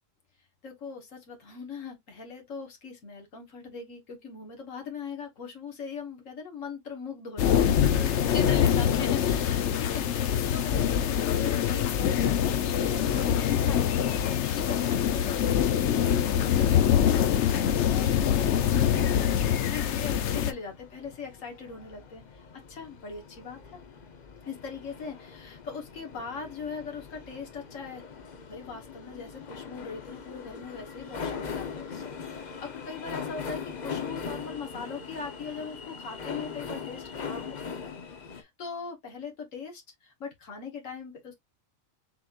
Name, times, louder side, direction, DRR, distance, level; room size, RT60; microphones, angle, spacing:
voice 1, 0.6-23.8 24.5-28.0 28.5-38.0 38.3-41.3, left 5 dB, 85° left, 1.7 m, -40 dB
sound 1, 7.4-20.5, left 9 dB, 65° left, 0.9 m, -24 dB
sound 2, 20.1-38.4, left 6 dB, 40° left, 0.8 m, -41 dB
6.1 x 3.0 x 2.4 m
omnidirectional pair, 1.3 m